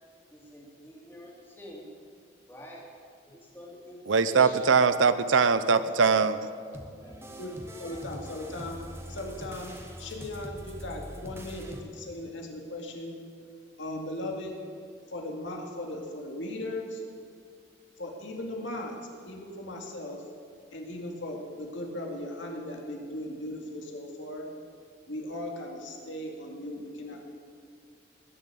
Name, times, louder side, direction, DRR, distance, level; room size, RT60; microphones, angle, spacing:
voice 1, 0.3-1.8 2.5-2.8 3.3-4.7 5.9-7.3, equal, 10° left, -4 dB, 3.2 m, -47 dB
voice 2, 4.1-6.4, right 5 dB, 85° right, 13 dB, 0.7 m, -22 dB
sound 1, 6.7-11.8, equal, 15° right, 1.3 m, -43 dB
voice 3, 7.8-8.8 9.1-9.7 10.0-13.1 13.8-14.6 15.1-17.0 18.0-19.0 19.2-20.2 20.7-24.5 25.1-27.3, left 1 dB, 75° left, 1 dB, 2.3 m, -37 dB
20.0 x 7.3 x 8.5 m, 2.1 s
head